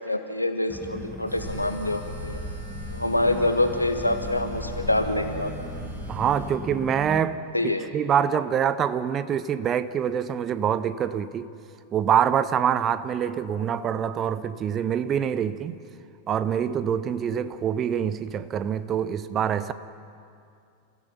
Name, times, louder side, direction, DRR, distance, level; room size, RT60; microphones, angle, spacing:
voice 1, 0.0-2.4 2.9-5.5 7.5-7.9, left 1 dB, 85° left, 6 dB, 1.5 m, -26 dB
sound 1, 0.7-7.2, left 1 dB, 5° left, 1.7 m, -39 dB
sound 2, 1.3-6.5, right 1 dB, 75° right, 6.1 m, -38 dB
voice 2, 6.1-7.4 7.9-11.5 11.9-15.8 16.3-19.7, right 8 dB, 30° right, 14 dB, 0.8 m, -25 dB
30.0 x 15.5 x 5.8 m, 2.4 s
figure-of-eight pair, 90°, 0 cm